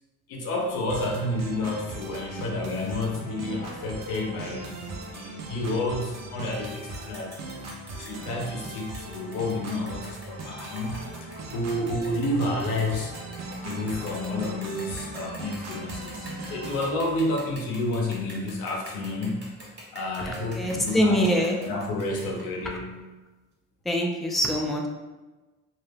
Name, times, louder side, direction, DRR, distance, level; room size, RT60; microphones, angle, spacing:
voice 1, 0.3-7.4 8.0-13.1 13.6-19.4 19.9-22.9, left 2 dB, 90° left, 0 dB, 0.6 m, -30 dB
sound 1, 0.9-16.9, right 2 dB, 55° right, 0.6 m, -39 dB
sound 2, 6.5-6.6 6.9-22.8, right 1 dB, 35° right, 1.2 m, -46 dB
voice 2, 20.2-21.6 22.6-22.8 23.8-24.9, equal, ahead, 1 dB, 0.4 m, -24 dB
2.3 x 2.0 x 3.2 m, 1.2 s
supercardioid pair, 50°, 32 cm